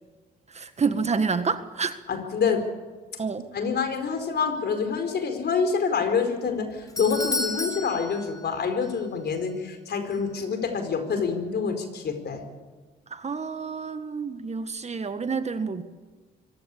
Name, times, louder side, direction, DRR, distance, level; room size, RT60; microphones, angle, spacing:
voice 1, 0.5-2.0 3.2-3.5 13.1-15.8, right 5 dB, 35° right, 10 dB, 1.6 m, -28 dB
voice 2, 2.1-2.6 3.5-12.4, left 5 dB, 55° left, 7 dB, 4.7 m, -27 dB
Doorbell, 6.5-9.0 9.3-9.4 10.1-10.2, left 2 dB, 20° left, 3.0 m, -32 dB
24.5 x 16.0 x 8.7 m, 1.4 s
cardioid pair, 90°, 20 cm